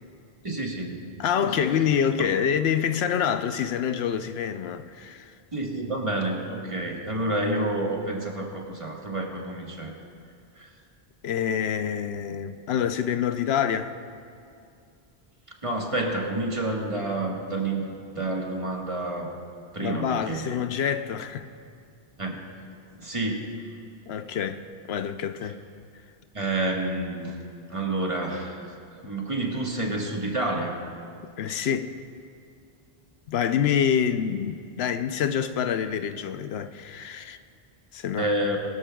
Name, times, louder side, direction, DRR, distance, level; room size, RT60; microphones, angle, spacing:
voice 1, 0.4-1.0 1.4-1.7 5.5-9.9 10.6-10.7 15.6-17.9 18.1-19.3 19.7-20.5 22.2-22.4 23.0-23.5 25.4-25.5 26.3-27.3 27.7-28.6 29.0-30.8 38.1-38.6, right 2 dB, 30° right, 1.5 m, -29 dB
voice 2, 1.2-5.3 11.2-13.9 19.8-21.5 24.1-25.6 31.4-31.9 33.3-37.4 37.9-38.3, left 8 dB, 80° left, 0.8 m, -26 dB
21.5 x 13.0 x 2.3 m
omnidirectional pair, 1.0 m